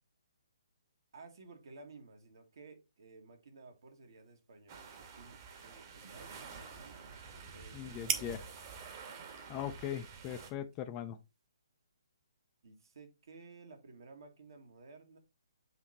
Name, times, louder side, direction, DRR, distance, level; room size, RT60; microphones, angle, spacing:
voice 1, 1.1-6.4 6.6-7.0 7.5-8.3 12.6-15.2, right 3 dB, 60° right, 1.8 m, -55 dB
sound 1, 3.8-11.5, right 8 dB, 20° right, 0.8 m, -46 dB
sound 2, 4.7-10.5, right 5 dB, 40° right, 1.5 m, -49 dB
voice 2, 7.7-8.4 9.5-11.2, left 10 dB, 25° left, 0.6 m, -40 dB
7.8 x 3.1 x 4.3 m
figure-of-eight pair, 135°, 2 cm